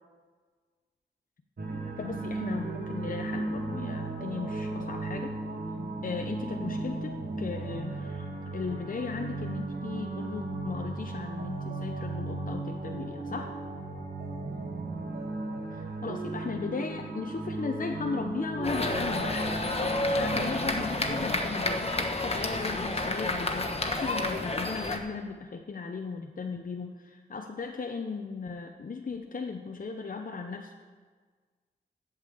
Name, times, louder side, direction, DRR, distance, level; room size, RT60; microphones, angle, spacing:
sound 1, 1.6-21.3, right 2 dB, 55° right, 1.8 m, -36 dB
voice 1, 2.0-5.4 6.0-8.3 8.5-13.5 15.7-19.6 20.2-30.7, left 4 dB, 50° left, 4 dB, 0.7 m, -37 dB
sound 2, 18.6-25.0, left 2 dB, 35° left, 1.2 m, -30 dB
8.3 x 7.2 x 8.0 m, 1.5 s
cardioid pair, 55°, 18 cm